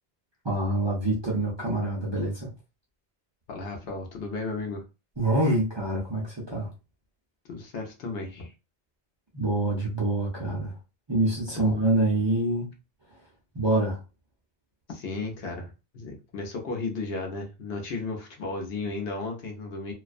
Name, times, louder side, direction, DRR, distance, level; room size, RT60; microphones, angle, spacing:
voice 1, 0.4-2.5 5.2-6.7 9.3-10.7 11.1-12.7 13.5-14.0, right 1 dB, 35° right, 0.5 m, -26 dB
voice 2, 3.5-4.8 7.5-8.5 11.5-11.8 14.9-19.9, left 3 dB, 70° left, 0.9 m, -34 dB
2.3 x 2.2 x 2.4 m
omnidirectional pair, 1.1 m